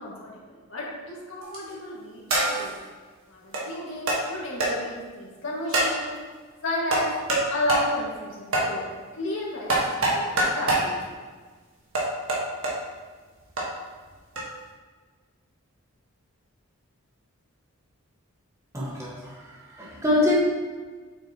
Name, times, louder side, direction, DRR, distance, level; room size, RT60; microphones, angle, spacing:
voice 1, 0.0-2.8 3.3-6.2 6.6-7.1 7.5-8.8 9.1-11.1, left 1 dB, 60° left, -5 dB, 1.9 m, -33 dB
sound 1, 1.4-1.7 2.3-2.7 3.5-3.6 4.1-4.2 4.6-4.7 5.7-6.0 6.9-7.4 7.7-7.9 8.5-8.7 9.7-10.9 11.9-12.7 13.6-13.7 14.4-14.5, right 2 dB, 65° right, 1.6 m, -24 dB
voice 2, 18.7-20.3, left 2 dB, 15° right, -5 dB, 1.4 m, -25 dB
7.6 x 6.1 x 2.9 m, 1.4 s
head